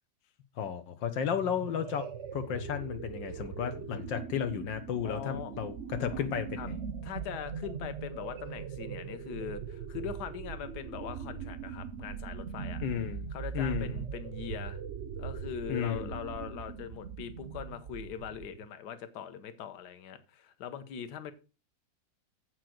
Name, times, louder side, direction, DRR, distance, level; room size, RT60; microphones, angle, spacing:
voice 1, 0.6-2.1 2.3-6.8 12.8-13.3 13.5-14.0 15.7-16.1, left 8 dB, 80° left, 1.6 m, -33 dB
sound 1, 1.1-18.7, right 7 dB, 55° right, 0.8 m, -40 dB
voice 2, 5.0-5.5 6.1-6.2 6.6-6.7 7.0-12.8 13.3-14.8 15.2-21.3, left 8 dB, 65° left, 1.5 m, -41 dB
7.7 x 6.6 x 5.9 m
omnidirectional pair, 2.0 m